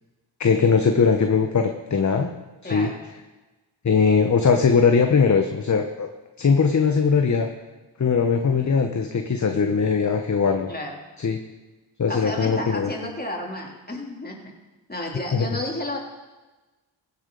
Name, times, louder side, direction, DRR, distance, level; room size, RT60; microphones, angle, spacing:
voice 1, 0.4-2.3 2.7-2.9 3.8-6.1 6.4-7.5 8.0-10.7 11.2-11.4 12.0-12.9 15.3-15.5, left 5 dB, 40° left, 5 dB, 1.0 m, -20 dB
voice 2, 2.6-3.0 10.7-11.0 12.1-14.4 14.9-16.0, left 1 dB, 20° left, -1 dB, 3.3 m, -31 dB
16.0 x 8.8 x 4.0 m, 1.2 s
supercardioid pair, 45°, 46 cm